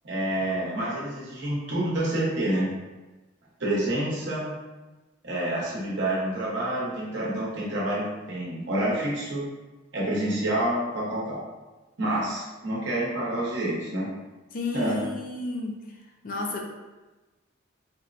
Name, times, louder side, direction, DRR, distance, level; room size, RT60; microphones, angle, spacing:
voice 1, 0.0-2.7 3.6-4.5 5.2-9.4 9.9-11.4 12.0-14.1 14.7-15.0, right 1 dB, 60° right, -5 dB, 0.9 m, -28 dB
voice 2, 14.5-15.8 16.2-16.6, left 3 dB, 45° left, 1 dB, 0.4 m, -32 dB
4.2 x 2.1 x 2.5 m, 1.2 s
head